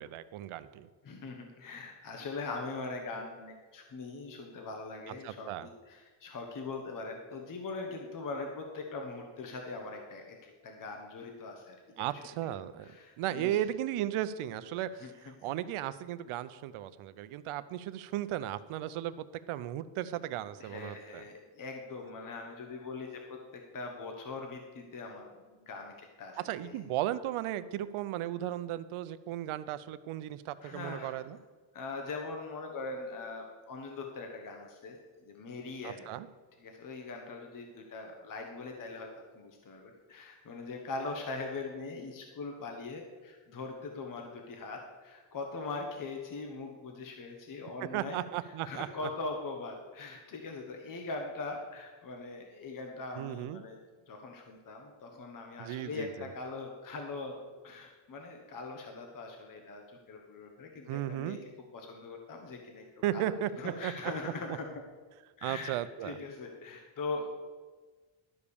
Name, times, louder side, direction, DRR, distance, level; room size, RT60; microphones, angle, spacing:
voice 1, 0.0-0.9 5.1-5.7 12.0-12.9 13.2-21.2 26.4-31.4 35.8-36.3 47.9-48.9 53.1-53.6 55.6-56.3 60.9-61.4 63.0-64.1 64.5-64.6 65.4-66.2, right 12 dB, 80° right, 14 dB, 0.7 m, -35 dB
voice 2, 1.0-12.2 12.5-12.6 12.8-13.5 15.0-15.1 15.4-15.5 20.6-26.8 30.6-31.2 31.7-36.1 36.6-39.1 39.3-48.2 48.6-53.8 54.1-57.4 57.6-61.4 61.7-62.8 63.1-63.3 63.6-64.7 65.4-65.7 66.0-67.3, left 3 dB, 40° left, 3 dB, 1.2 m, -41 dB
12.0 x 5.0 x 7.0 m, 1.4 s
cardioid pair, 145°, 49 cm